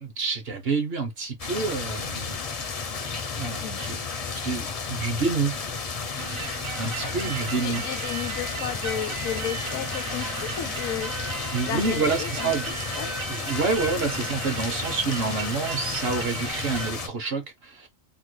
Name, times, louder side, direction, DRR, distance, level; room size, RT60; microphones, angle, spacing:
voice 1, 0.0-2.4 3.3-4.0 4.4-5.6 6.8-7.8 11.5-12.8 13.3-17.9, right 4 dB, 55° right, 0.8 m, -28 dB
sound 1, 1.4-17.1, left 5 dB, 50° left, 0.4 m, -33 dB
voice 2, 3.6-4.0 7.0-11.1 11.7-12.5 12.9-13.1, left 10 dB, 75° left, 0.9 m, -34 dB
sound 2, 6.2-16.9, right 5 dB, 85° right, 1.1 m, -36 dB
3.5 x 2.1 x 3.0 m
omnidirectional pair, 1.4 m